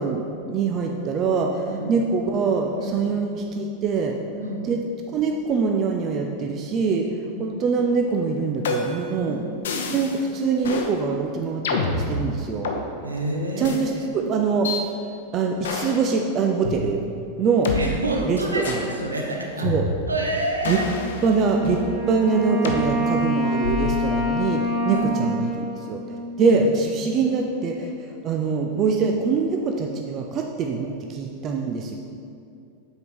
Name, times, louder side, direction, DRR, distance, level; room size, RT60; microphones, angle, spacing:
voice 1, 0.0-4.1 4.6-4.8 5.1-7.1 7.4-9.4 9.9-12.7 13.6-14.7 15.3-17.0 17.4-17.7 18.2-18.8 19.6-19.9 20.7-20.8 21.2-26.0 26.4-27.9 28.2-32.0, right 5 dB, 30° right, 2 dB, 0.5 m, -24 dB
voice 2, 2.8-3.1 4.4-4.7 7.2-7.5 9.3-9.4 13.0-14.1 17.7-19.7 20.1-20.8 24.9-25.2 26.5-26.6 27.1-27.2, right 1 dB, 80° right, 0 dB, 0.9 m, -28 dB
sound 1, 8.6-9.1 9.6-10.2 10.6-10.9 11.6-12.8 13.6-13.8 14.6-14.8 15.6-16.1 16.6-16.8 17.6-17.8 18.6-18.9 19.6-20.2 20.6-21.9 22.6-22.8 23.6-24.0, left 4 dB, 60° left, 0.7 m, -28 dB
Wind instrument woodwind instrument, 21.4-26.8, equal, 15° right, 1.3 m, -26 dB
7.9 x 4.6 x 5.2 m, 2.5 s
figure-of-eight pair, 90°, 0 cm